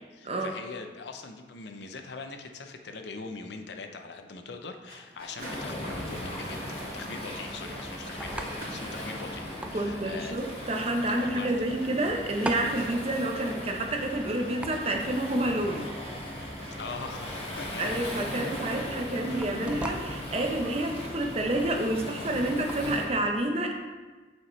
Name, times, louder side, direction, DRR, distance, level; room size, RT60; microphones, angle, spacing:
voice 1, 0.0-10.4 11.1-11.7 16.8-18.1, left 4 dB, 75° left, 6 dB, 0.6 m, -42 dB
sound 1, 4.9-19.0, right 1 dB, 55° right, 2.3 m, -48 dB
sound 2, 5.3-23.0, right 1 dB, 5° right, 0.3 m, -44 dB
Waves surf, 5.4-23.1, left 1 dB, 35° left, 1.4 m, -38 dB
voice 2, 9.7-15.9 17.8-23.7, right 1 dB, 35° right, 3 dB, 0.7 m, -29 dB
7.4 x 5.8 x 3.2 m, 1.3 s
head